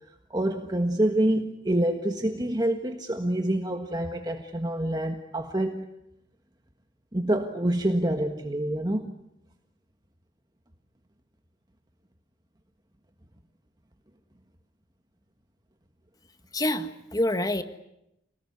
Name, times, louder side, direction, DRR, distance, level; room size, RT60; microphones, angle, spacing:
voice 1, 0.3-5.9 7.1-9.1, right 1 dB, 20° right, 4 dB, 1.6 m, -27 dB
voice 2, 16.5-17.6, left 1 dB, 20° left, 9 dB, 1.6 m, -26 dB
28.0 x 20.0 x 9.7 m, 0.84 s
head